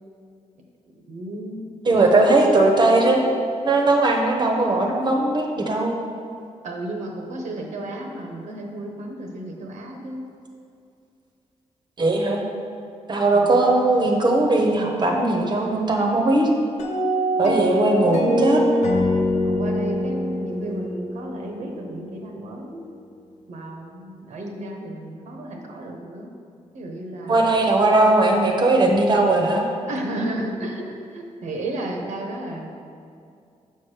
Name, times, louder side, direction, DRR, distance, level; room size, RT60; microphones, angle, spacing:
voice 1, 1.1-2.6 6.6-10.2 13.3-13.6 17.4-17.8 19.4-22.9 23.5-26.3 26.7-27.6 29.9-32.7, right 1 dB, 80° right, 2 dB, 1.0 m, -33 dB
voice 2, 1.9-3.3 3.6-5.9 12.0-12.4 13.1-16.5 17.4-18.6 27.3-29.7, right 2 dB, 40° right, 1 dB, 0.8 m, -19 dB
sound 1, 16.8-22.0, equal, 75° left, 0.9 m, -24 dB
7.0 x 4.6 x 4.9 m, 2.4 s
wide cardioid pair, 150°, 12 cm